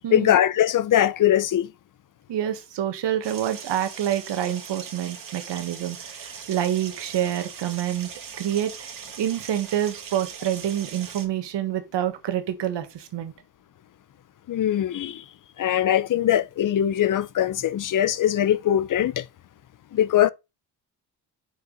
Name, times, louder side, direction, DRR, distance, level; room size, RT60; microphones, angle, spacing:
voice 1, 0.1-1.7 14.5-15.2 15.6-19.2 19.9-20.3, left 11 dB, 50° left, 0.6 m, -21 dB
voice 2, 2.3-8.1 8.4-13.3, right 11 dB, 75° right, 1.4 m, -27 dB
sound 1, 3.2-11.3, right 6 dB, 50° right, 2.2 m, -40 dB
5.9 x 4.9 x 3.9 m
cardioid pair, 85°, 42 cm